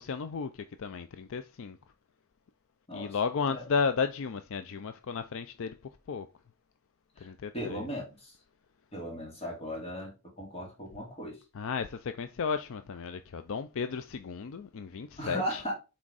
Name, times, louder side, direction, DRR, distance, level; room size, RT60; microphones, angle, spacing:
voice 1, 0.0-1.8 2.9-5.8 6.1-6.3 7.2-7.9 11.5-15.6, left 5 dB, 60° left, 0.4 m, -33 dB
voice 2, 7.5-8.3 8.9-11.4 15.2-15.7, equal, 30° left, 2.6 m, -37 dB
6.1 x 4.4 x 4.0 m
head